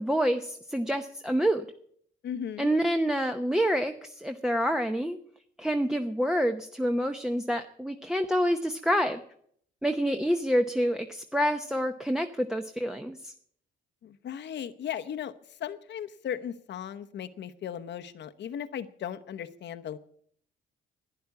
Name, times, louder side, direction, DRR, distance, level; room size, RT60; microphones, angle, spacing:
voice 1, 0.0-1.6 2.6-5.2 5.6-9.2 9.8-13.3, equal, 5° right, 5 dB, 0.8 m, -27 dB
voice 2, 2.2-2.7 14.0-20.0, left 9 dB, 60° left, 10 dB, 0.9 m, -37 dB
11.5 x 10.0 x 8.2 m, 0.64 s
cardioid pair, 90°, 20 cm